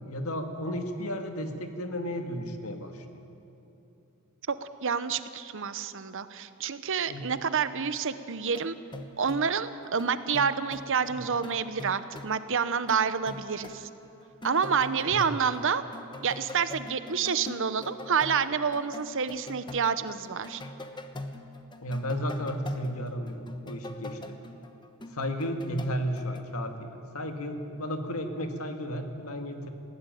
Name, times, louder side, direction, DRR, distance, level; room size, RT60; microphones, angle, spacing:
voice 1, 0.1-3.2 7.1-7.3 11.1-11.2 15.1-15.2 21.8-24.4 25.1-29.7, equal, 75° left, 5 dB, 1.9 m, -33 dB
voice 2, 4.5-8.7 9.2-13.9 14.4-15.8 16.2-20.6, right 6 dB, 60° right, 13 dB, 0.8 m, -28 dB
sound 1, 8.5-9.6 9.8-12.3 12.7-13.9 14.2-15.7 15.9-26.4, left 1 dB, 20° left, 1.1 m, -42 dB
20.0 x 16.0 x 9.2 m, 3.0 s
head